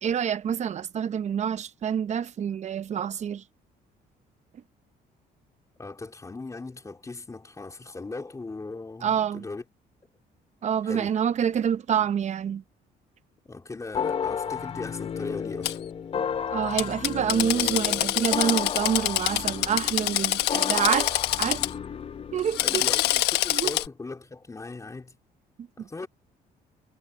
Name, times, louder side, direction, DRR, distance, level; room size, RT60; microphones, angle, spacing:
voice 1, 0.0-3.4 9.0-9.4 10.6-12.6 16.5-21.1 21.4-21.7 22.3-22.8 23.5-23.7 25.8-26.1, right 8 dB, 45° right, 0.8 m, -27 dB
voice 2, 5.8-9.6 10.8-11.2 11.9-12.1 13.4-15.8 22.6-25.1 25.8-26.1, left 3 dB, 20° left, 3.7 m, -38 dB
sound 1, 13.9-22.7, left 7 dB, 35° left, 0.7 m, -33 dB
Drill, 15.6-15.7 16.8-21.7 22.4-23.9, left 15 dB, 85° left, 1.3 m, -26 dB
cardioid pair, 110°, 17 cm